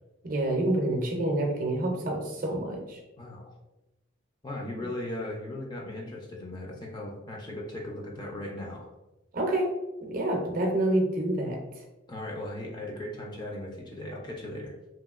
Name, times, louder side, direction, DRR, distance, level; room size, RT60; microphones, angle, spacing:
voice 1, 0.2-3.0 9.3-9.7 10.0-11.6, right 1 dB, 45° right, 1 dB, 0.5 m, -27 dB
voice 2, 4.4-8.9 12.1-14.7, left 1 dB, 20° left, -1 dB, 0.3 m, -37 dB
2.8 x 2.7 x 2.3 m, 0.98 s
head